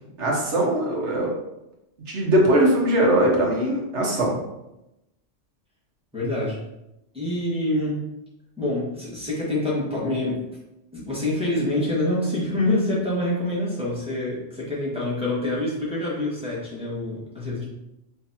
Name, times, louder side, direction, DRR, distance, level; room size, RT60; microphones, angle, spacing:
voice 1, 0.2-1.3 2.1-4.4, right 1 dB, 65° right, -2 dB, 1.4 m, -20 dB
voice 2, 6.1-6.6 7.1-8.0 8.6-10.4 10.9-17.6, left 1 dB, 5° right, -8 dB, 1.5 m, -26 dB
5.7 x 3.2 x 2.8 m, 0.90 s
omnidirectional pair, 1.3 m